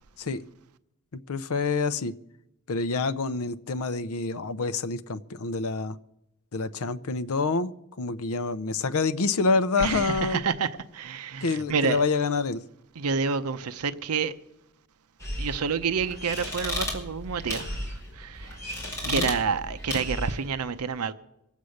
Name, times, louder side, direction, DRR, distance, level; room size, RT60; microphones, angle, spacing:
voice 1, 1.1-2.1 2.7-6.0 6.5-7.7 8.0-10.4 11.4-12.6 19.0-19.3, left 4 dB, 70° left, 0.6 m, -27 dB
voice 2, 9.8-12.0 13.0-14.3 15.4-17.9 18.1-18.6 19.1-21.1, right 5 dB, 85° right, 0.7 m, -28 dB
sound 1, 15.2-20.5, left 1 dB, 15° left, 4.6 m, -34 dB
23.5 x 8.3 x 6.4 m
head